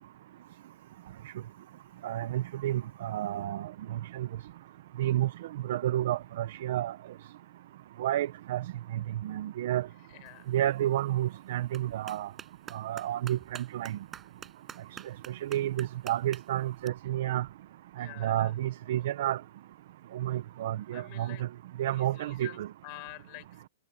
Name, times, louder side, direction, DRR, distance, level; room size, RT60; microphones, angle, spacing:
voice 1, 2.0-4.3 5.0-5.3 5.6-7.0 8.0-8.7 8.9-9.9 10.5-12.3 12.7-14.0 15.3-17.5 18.0-19.4 20.1-21.5 21.8-22.7, right 13 dB, 50° right, 0.9 m, -30 dB
voice 2, 10.1-10.5 18.0-18.5 20.9-21.4 21.9-23.7, left 31 dB, 30° left, 4.8 m, -48 dB
Clapping, 10.3-16.9, right 8 dB, 15° right, 7.9 m, -50 dB
hypercardioid pair, 165°, 0 cm